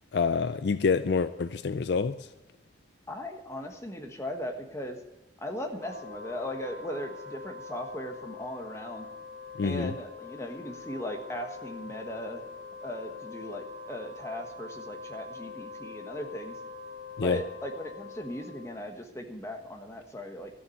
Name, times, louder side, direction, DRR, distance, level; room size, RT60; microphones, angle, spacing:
voice 1, 0.1-2.2 9.6-9.9 17.2-17.4, left 5 dB, 60° left, 12 dB, 0.4 m, -27 dB
voice 2, 3.1-5.0 5.4-9.1 9.6-12.4 12.8-16.6 17.2-20.5, equal, 15° left, 3 dB, 1.4 m, -38 dB
Wind instrument woodwind instrument, 5.7-19.1, left 4 dB, 65° right, 3.0 m, -44 dB
13.5 x 7.1 x 8.0 m, 0.99 s
head